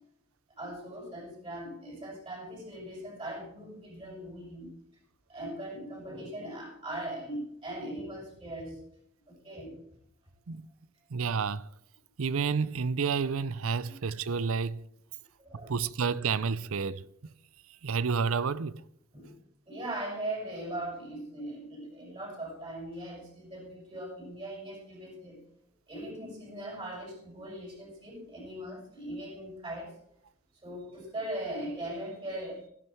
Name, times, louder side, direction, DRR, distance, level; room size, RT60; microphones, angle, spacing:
voice 1, 0.6-4.7 5.3-8.8 9.4-9.8 13.9-14.0 15.4-15.8 19.1-19.3 19.7-25.4 25.9-29.9 30.6-32.7, right 1 dB, 25° right, 6.5 m, -40 dB
voice 2, 11.1-11.7 12.2-14.8 15.7-17.1 17.8-18.8, right 5 dB, 70° right, 0.6 m, -30 dB
14.0 x 11.5 x 4.5 m
head